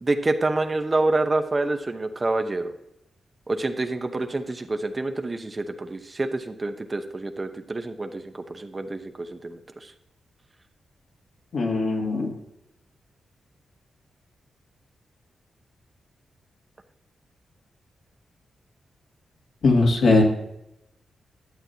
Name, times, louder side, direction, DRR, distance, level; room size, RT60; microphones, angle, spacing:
voice 1, 0.0-2.7 3.5-9.9, right 2 dB, 30° right, 7 dB, 0.8 m, -27 dB
voice 2, 11.5-12.3 19.6-20.2, left 3 dB, 75° left, -1 dB, 2.3 m, -20 dB
11.5 x 7.6 x 2.8 m, 0.84 s
cardioid pair, 80°, 0 cm